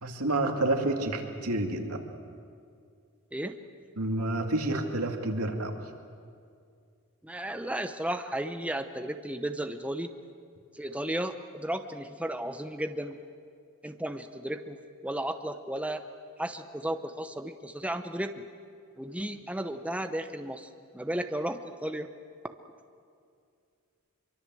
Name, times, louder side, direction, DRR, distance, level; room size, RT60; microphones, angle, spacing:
voice 1, 0.0-2.0 4.0-5.7, right 2 dB, 90° right, 4 dB, 2.4 m, -29 dB
voice 2, 7.2-10.1 10.7-13.2 13.8-16.0 16.4-18.5 19.0-22.1, right 1 dB, 5° right, 7 dB, 0.8 m, -34 dB
24.0 x 24.0 x 7.7 m, 2.3 s
head